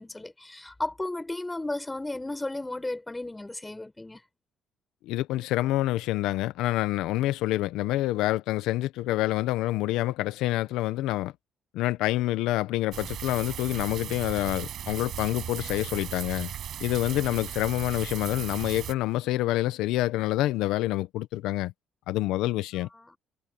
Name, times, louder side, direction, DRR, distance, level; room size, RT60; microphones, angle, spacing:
voice 1, 0.0-4.2 23.0-23.2, left 2 dB, 15° left, 4.6 m, -34 dB
voice 2, 5.1-11.3 11.7-16.5 16.8-21.7 22.1-22.9, left 16 dB, 85° left, 0.7 m, -27 dB
sound 1, 12.9-18.9, right 10 dB, 65° right, 5.0 m, -37 dB
supercardioid pair, 80°, 0 cm